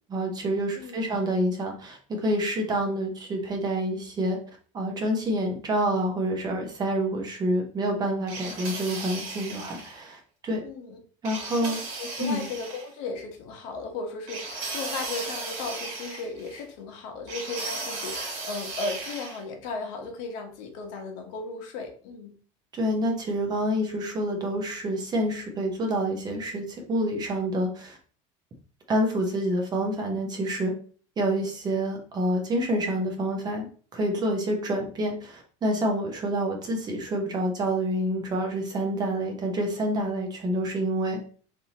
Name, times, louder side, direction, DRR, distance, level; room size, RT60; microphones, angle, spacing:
voice 1, 0.1-4.4 4.7-10.6 11.2-11.8 12.2-12.5 22.7-28.0 28.9-30.7 31.2-41.2, right 1 dB, 25° right, 2 dB, 0.7 m, -27 dB
voice 2, 0.7-1.1 10.6-11.0 11.3-11.7 12.0-22.3, left 3 dB, 80° left, 3 dB, 1.0 m, -36 dB
sound 1, 8.3-10.0 11.2-12.9 14.3-16.6 17.3-19.4, right 3 dB, 70° right, 1.6 m, -36 dB
3.4 x 2.8 x 2.8 m, 0.43 s
cardioid pair, 150°, 16 cm